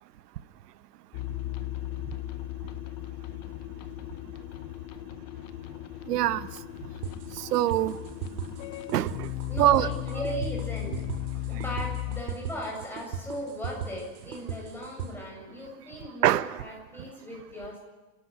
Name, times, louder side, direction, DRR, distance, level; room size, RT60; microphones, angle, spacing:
sound 1, 1.1-12.2, left 14 dB, 30° left, 0.7 m, -36 dB
voice 1, 6.1-6.5 7.4-8.0 8.9-9.3 9.6-9.9 16.2-16.6, right 13 dB, 85° right, 14 dB, 0.9 m, -24 dB
sound 2, 7.0-15.1, right 7 dB, 70° right, 6.3 m, -36 dB
voice 2, 9.5-11.0 11.3-17.8, equal, 5° left, -2 dB, 7.5 m, -38 dB
30.0 x 12.5 x 9.4 m, 1.2 s
supercardioid pair, 160°, 46 cm